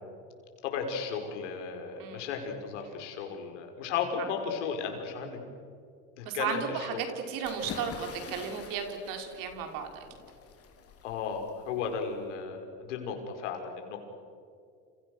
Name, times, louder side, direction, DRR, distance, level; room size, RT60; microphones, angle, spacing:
voice 1, 0.6-5.4 6.2-7.0 11.0-14.0, left 6 dB, 85° left, 4 dB, 5.7 m, -35 dB
voice 2, 6.2-10.1, right 7 dB, 65° right, 4 dB, 5.4 m, -35 dB
sound 1, 7.4-12.3, left 6 dB, 40° left, 4.3 m, -46 dB
30.0 x 29.0 x 6.5 m, 2.3 s
supercardioid pair, 95°, 35 cm